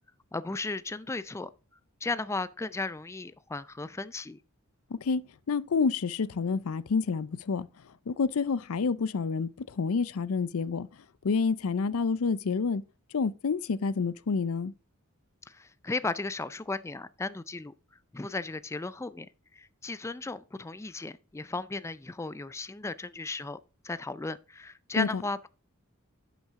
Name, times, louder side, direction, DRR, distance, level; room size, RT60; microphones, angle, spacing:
voice 1, 0.3-1.5 2.0-4.4 15.5-17.7 18.1-23.6 23.8-25.5, left 3 dB, 15° left, 0.4 m, -35 dB
voice 2, 4.9-7.7 8.1-10.9 11.2-12.8 13.1-14.7 25.0-25.2, left 5 dB, 75° left, 0.5 m, -28 dB
11.0 x 6.0 x 3.6 m
head